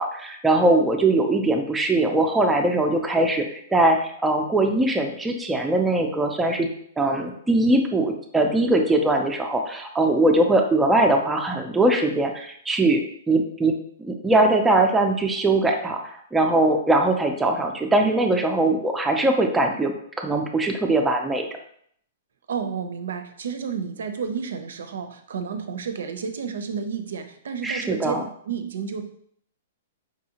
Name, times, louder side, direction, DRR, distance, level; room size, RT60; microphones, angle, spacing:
voice 1, 0.0-6.7 7.0-16.0 16.3-21.5 27.6-28.2, right 2 dB, 5° right, 3 dB, 0.4 m, -21 dB
voice 2, 22.5-28.2 28.4-29.0, right 6 dB, 80° right, 7 dB, 0.5 m, -31 dB
4.8 x 2.7 x 2.8 m, 0.65 s
hypercardioid pair, 160°, 0 cm